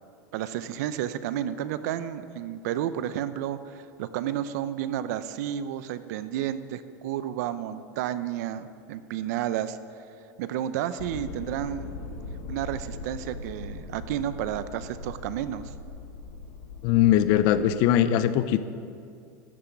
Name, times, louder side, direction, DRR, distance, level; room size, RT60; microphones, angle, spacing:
voice 1, 0.3-9.8 10.4-11.9 12.5-15.7, right 11 dB, 65° right, 13 dB, 0.7 m, -31 dB
sound 1, 11.0-17.8, left 3 dB, 85° left, 2.1 m, -40 dB
voice 2, 16.8-18.6, left 11 dB, 45° left, 13 dB, 0.6 m, -21 dB
13.0 x 7.2 x 9.2 m, 2.5 s
supercardioid pair, 160°, 10 cm